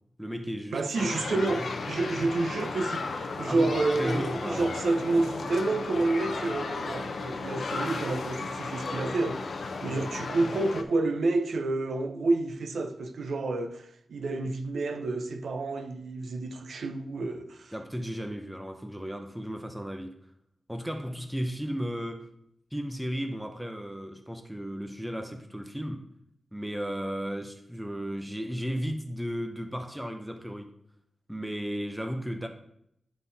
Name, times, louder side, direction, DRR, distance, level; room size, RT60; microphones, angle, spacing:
voice 1, 0.2-1.5 3.5-4.8 9.9-10.1 17.7-20.1 20.7-22.3 22.7-26.0 26.5-30.7 31.3-32.5, equal, 5° right, 0.7 m, -35 dB
voice 2, 0.7-17.7, right 2 dB, 70° right, 0.7 m, -29 dB
sound 1, 0.9-10.8, left 4 dB, 55° left, 0.7 m, -35 dB
11.0 x 3.9 x 4.1 m
wide cardioid pair, 150°, 0 cm